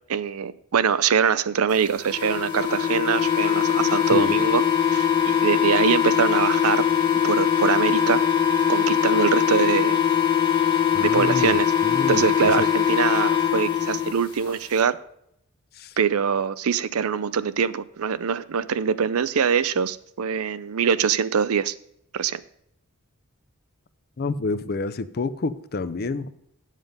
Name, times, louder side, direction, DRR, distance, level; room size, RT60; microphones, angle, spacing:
voice 1, 0.1-4.6 4.9-6.8 7.1-8.2 8.7-10.0 11.0-11.7 12.1-15.0 16.0-21.7 22.1-22.4, right 7 dB, 70° right, 16 dB, 0.5 m, -23 dB
sound 1, 2.0-14.1, left 8 dB, 20° left, 1.4 m, -21 dB
voice 2, 10.9-12.3 12.6-12.7 15.8-15.9 24.2-26.3, left 3 dB, 45° left, 14 dB, 0.5 m, -28 dB
9.5 x 7.4 x 5.2 m, 0.73 s
head